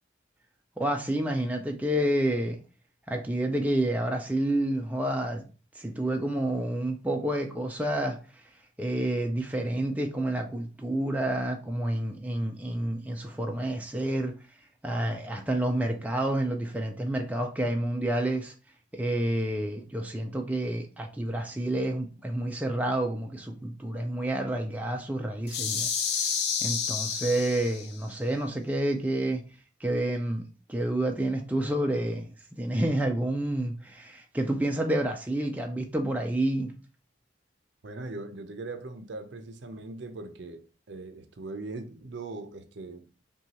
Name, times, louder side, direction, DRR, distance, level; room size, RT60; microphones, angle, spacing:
voice 1, 0.8-2.6 3.1-5.4 5.7-8.4 8.8-14.3 14.8-18.5 18.9-26.3 26.6-29.4 29.8-36.7, right 1 dB, 10° right, 0.4 m, -29 dB
sound 1, 25.5-28.0, left 6 dB, 55° left, 0.6 m, -30 dB
voice 2, 37.8-43.2, right 3 dB, 60° right, 0.5 m, -40 dB
5.7 x 2.3 x 2.9 m
head